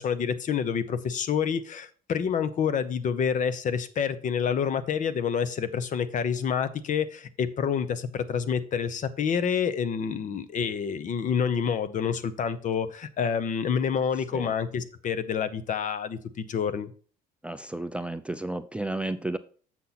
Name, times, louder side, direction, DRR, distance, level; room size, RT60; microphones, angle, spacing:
voice 1, 0.0-16.9, left 7 dB, 50° left, 13 dB, 0.8 m, -28 dB
voice 2, 17.4-19.4, right 2 dB, 5° right, 12 dB, 0.4 m, -32 dB
7.4 x 5.7 x 4.0 m, 0.42 s
cardioid pair, 110°, 17 cm